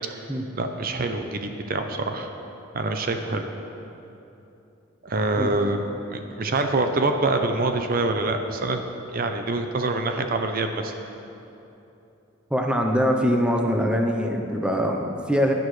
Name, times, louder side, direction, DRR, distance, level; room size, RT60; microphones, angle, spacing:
voice 1, 0.5-2.3 2.7-3.5 5.0-5.8 6.1-8.8 9.1-10.9, right 2 dB, 45° right, 6 dB, 0.6 m, -25 dB
voice 2, 12.5-15.5, equal, 5° right, 2 dB, 0.7 m, -23 dB
15.5 x 10.5 x 3.3 m, 2.9 s
head